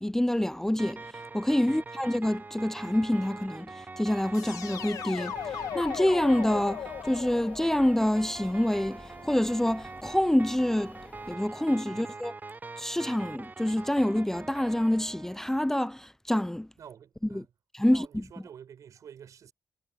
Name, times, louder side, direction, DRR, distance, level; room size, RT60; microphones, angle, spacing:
voice 1, 0.0-5.3 5.7-11.0 11.3-12.3 12.8-16.7 17.3-17.4 17.7-18.2, left 1 dB, 5° left, 0.6 m, -27 dB
sound 1, 0.8-15.5, right 3 dB, 30° right, 0.7 m, -44 dB
sound 2, 4.3-9.3, left 9 dB, 80° left, 1.9 m, -38 dB
sound 3, 5.3-11.4, left 2 dB, 25° left, 3.0 m, -51 dB
voice 2, 16.8-17.5 17.8-19.5, right 8 dB, 75° right, 5.1 m, -49 dB
supercardioid pair, 50°, 6 cm